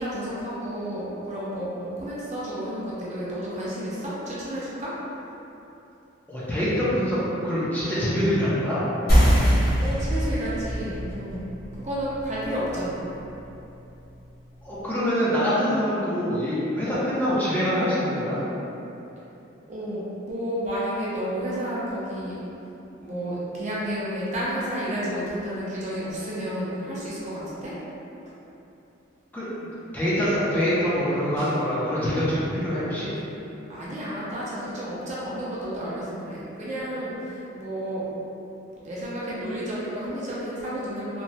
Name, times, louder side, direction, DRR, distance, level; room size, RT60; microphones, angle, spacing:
voice 1, 0.0-4.9 9.8-11.5 11.8-13.0 19.7-22.3 23.0-27.7 33.7-38.0 38.8-41.2, equal, 35° right, -8 dB, 0.6 m, -31 dB
voice 2, 6.3-8.8 14.6-18.4 29.3-33.1, equal, 10° left, -11 dB, 0.5 m, -25 dB
sound 1, 9.1-14.2, equal, 55° left, 0.9 m, -24 dB
Snare drum, 31.4-32.3 36.7-36.8, equal, 80° left, 0.7 m, -40 dB
3.0 x 2.1 x 2.7 m, 2.9 s
head